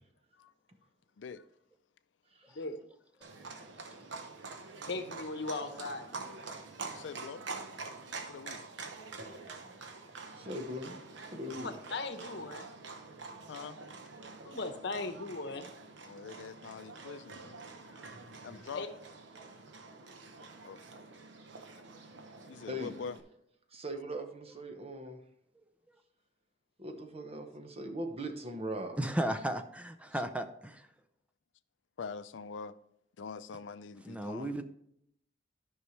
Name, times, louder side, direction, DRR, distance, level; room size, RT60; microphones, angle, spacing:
Livestock farm animals working animals, 3.2-23.2, right 4 dB, 75° right, 1.0 m, -46 dB
voice 1, 4.9-6.3 11.6-12.7 14.4-15.7 18.7-18.9, left 3 dB, 70° left, 1.0 m, -38 dB
voice 2, 6.9-7.5 8.3-8.7 13.5-13.8 16.0-17.7 18.4-18.8 20.6-20.8 22.5-23.2 32.0-32.7 33.2-34.5, left 5 dB, 85° left, 0.4 m, -44 dB
voice 3, 10.4-11.0 11.3-11.7 22.7-22.9 23.7-25.2 26.8-29.0, right 1 dB, 35° right, 1.0 m, -40 dB
voice 4, 29.0-30.8 34.0-34.6, right 1 dB, 5° right, 0.5 m, -34 dB
12.5 x 5.5 x 3.2 m
head